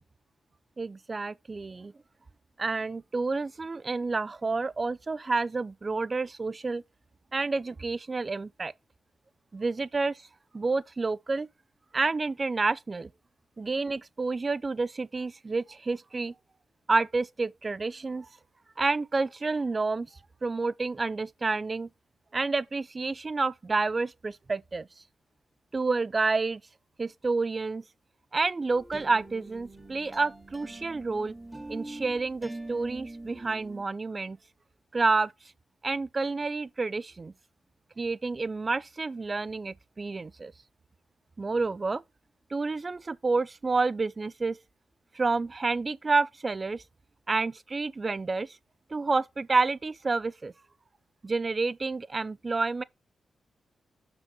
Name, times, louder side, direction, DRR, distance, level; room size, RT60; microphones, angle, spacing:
voice 1, 0.8-1.9 2.6-6.8 7.3-8.7 9.5-10.2 10.5-11.5 11.9-13.1 13.6-16.3 16.9-18.3 18.8-20.1 20.4-21.9 22.3-24.9 25.7-26.6 27.0-27.8 28.3-31.3 31.7-34.4 34.9-35.3 35.8-37.3 38.0-40.5 41.4-42.0 42.5-44.6 45.1-46.8 47.3-48.6 48.9-50.5 51.2-52.8, right 3 dB, 40° right, 0.5 m, -29 dB
sound 1, 28.7-33.8, right 2 dB, 5° right, 2.5 m, -43 dB
6.3 x 5.0 x 4.9 m
cardioid pair, 55°, 0 cm